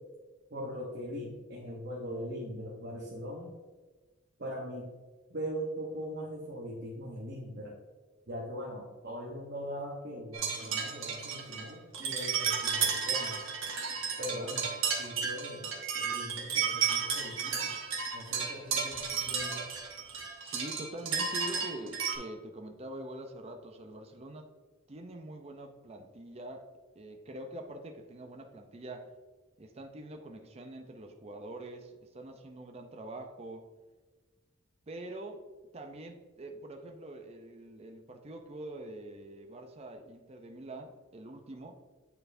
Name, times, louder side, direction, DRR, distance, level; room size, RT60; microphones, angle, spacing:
voice 1, 0.5-3.5 4.4-4.9 5.3-7.8 8.3-13.4 14.2-17.8 18.1-19.7, equal, 55° right, -2 dB, 0.9 m, -41 dB
sound 1, 10.3-22.2, right 6 dB, 85° right, 1.1 m, -33 dB
voice 2, 20.4-24.5 24.9-26.7 27.0-29.1 29.6-33.6 34.9-35.4 35.7-41.7, right 1 dB, 30° right, 4 dB, 0.5 m, -45 dB
8.7 x 4.5 x 2.6 m, 1.3 s
head